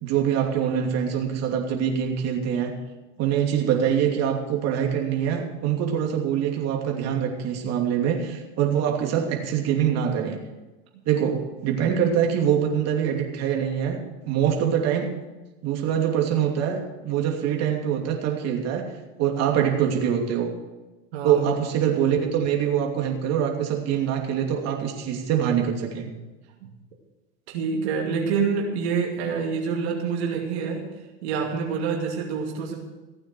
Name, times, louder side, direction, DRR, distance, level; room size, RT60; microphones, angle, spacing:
voice 1, 0.0-2.7 3.2-10.4 11.1-14.0 14.2-15.1 15.6-18.8 19.2-20.5 21.2-26.1, right 8 dB, 50° right, 1 dB, 2.8 m, -24 dB
voice 2, 21.1-21.4 26.6-26.7 27.5-30.9 31.2-32.7, right 5 dB, 85° right, 0 dB, 2.4 m, -27 dB
16.0 x 8.9 x 6.2 m, 1.1 s
supercardioid pair, 105°, 32 cm